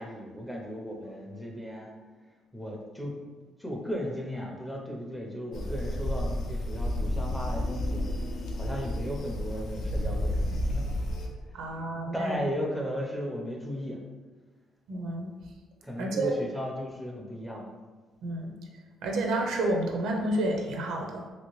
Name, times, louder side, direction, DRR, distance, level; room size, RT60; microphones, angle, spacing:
voice 1, 0.0-1.9 2.5-3.1 3.6-8.0 8.5-10.8 11.6-14.0 15.8-17.7, equal, ahead, -1 dB, 0.5 m, -36 dB
sound 1, 5.5-11.3, left 1 dB, 55° left, 0.5 m, -31 dB
voice 2, 11.5-12.4 14.9-15.3 16.0-16.4 18.2-18.5 19.0-21.2, right 1 dB, 80° right, 1 dB, 0.4 m, -30 dB
3.0 x 2.8 x 3.0 m, 1.3 s
cardioid pair, 150°, 0 cm